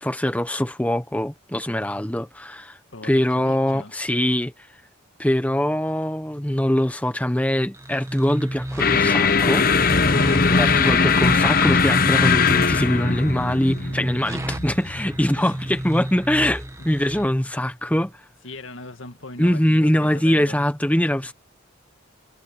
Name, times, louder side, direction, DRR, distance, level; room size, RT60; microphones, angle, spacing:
voice 1, 0.0-2.8 3.0-4.5 5.2-9.7 10.5-18.2 19.4-21.3, equal, 5° left, 1.0 m, -23 dB
voice 2, 2.9-3.9 15.4-15.5 18.4-20.7, left 2 dB, 80° left, 2.0 m, -40 dB
sound 1, 7.7-17.3, right 1 dB, 15° right, 1.7 m, -32 dB
sound 2, 8.8-15.2, left 5 dB, 45° left, 0.8 m, -20 dB
head